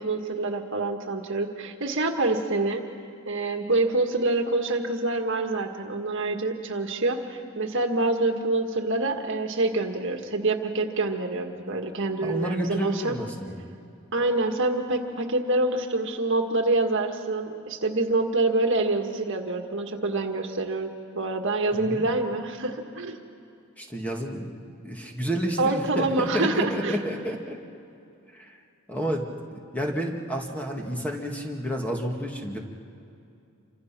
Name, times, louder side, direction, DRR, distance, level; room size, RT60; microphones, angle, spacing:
voice 1, 0.0-2.8 3.3-13.2 14.1-23.2 25.6-27.0, right 2 dB, 60° right, 4 dB, 1.8 m, -26 dB
voice 2, 12.2-13.6 21.7-22.0 23.8-24.5 24.8-27.6 28.3-28.6 28.9-29.3 29.7-32.6, equal, 5° left, 0 dB, 2.2 m, -30 dB
28.0 x 25.0 x 6.1 m, 2.5 s
head